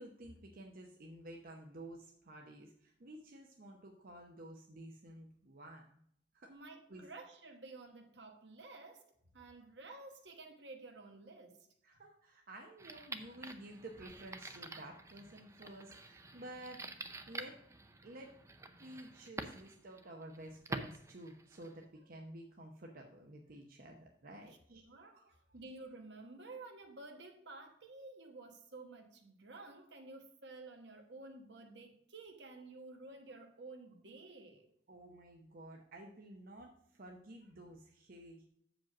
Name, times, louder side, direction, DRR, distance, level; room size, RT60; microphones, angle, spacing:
voice 1, 0.0-6.0 6.3-6.5 6.9-7.0 11.8-17.6 18.0-18.3 18.7-25.3 34.9-38.5, right 1 dB, 55° right, 0.9 m, -52 dB
voice 2, 6.5-11.7 24.7-25.2 25.5-34.7, right 3 dB, 70° right, 1.3 m, -52 dB
sound 1, 12.8-21.8, right 2 dB, 15° right, 0.6 m, -48 dB
7.4 x 5.2 x 5.9 m
head